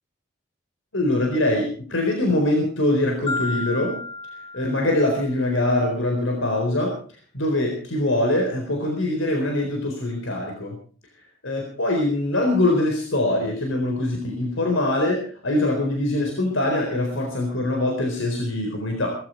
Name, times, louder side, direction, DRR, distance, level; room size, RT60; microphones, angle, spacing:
voice 1, 0.9-4.0 4.5-6.9 7.3-10.7 11.4-19.2, left 1 dB, 80° left, 3 dB, 4.2 m, -23 dB
Marimba xylophone, 3.3-5.5, left 3 dB, 25° left, 2.1 m, -32 dB
18.5 x 15.0 x 4.6 m, 0.42 s
head